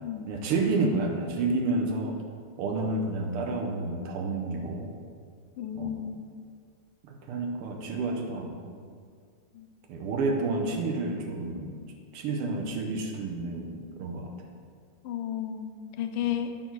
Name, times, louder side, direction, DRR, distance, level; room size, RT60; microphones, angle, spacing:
voice 1, 0.3-2.2 2.6-4.9 5.8-6.0 7.0-8.8 9.9-11.8 12.1-14.3, right 3 dB, 85° right, 2 dB, 1.7 m, -30 dB
voice 2, 5.6-6.2 9.5-9.6 15.0-15.7 16.0-16.5, left 10 dB, 85° left, 7 dB, 1.5 m, -32 dB
9.2 x 4.5 x 4.6 m, 2.1 s
omnidirectional pair, 2.4 m